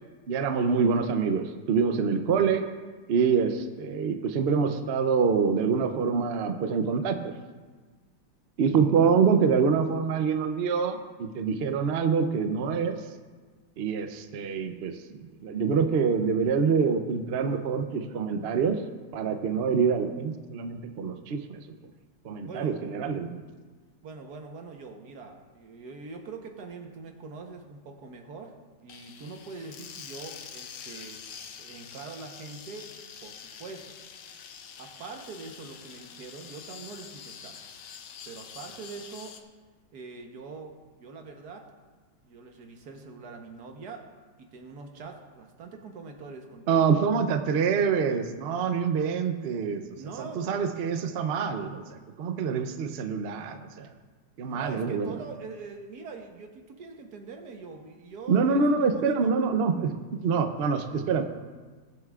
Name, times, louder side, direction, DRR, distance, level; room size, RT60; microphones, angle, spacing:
voice 1, 0.3-2.6 3.1-7.3 8.6-13.0 13.8-18.8 19.1-21.6 22.2-23.4 46.7-49.8 50.2-53.9 54.4-55.1 58.3-61.2, right 5 dB, 85° right, 7 dB, 0.5 m, -26 dB
voice 2, 22.4-22.8 24.0-28.5 28.8-31.2 31.6-32.9 33.2-34.0 34.8-37.7 38.3-39.4 39.9-41.7 42.2-44.1 44.4-46.9 50.0-50.7 54.4-59.3, right 4 dB, 65° right, 4 dB, 1.5 m, -43 dB
sound 1, 28.9-39.4, left 7 dB, 85° left, 1.5 m, -45 dB
21.5 x 7.7 x 2.4 m, 1.4 s
omnidirectional pair, 2.0 m